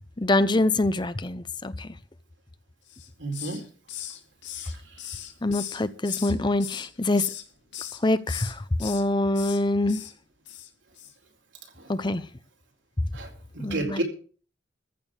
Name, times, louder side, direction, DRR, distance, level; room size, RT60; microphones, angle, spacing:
voice 1, 0.2-1.9 5.4-7.3 8.0-10.0 11.9-12.3 13.6-14.0, left 2 dB, 25° left, 0.7 m, -25 dB
Hiss, 2.9-3.6 3.9-6.3 6.6-7.4 7.7-8.0 8.3-9.0 9.3-9.6 9.9-10.1 10.5-10.7 11.0-11.1, left 11 dB, 85° left, 2.3 m, -38 dB
voice 2, 3.2-3.6 13.1-13.3 13.5-14.0, right 2 dB, 85° right, 4.3 m, -30 dB
14.5 x 6.6 x 9.0 m
head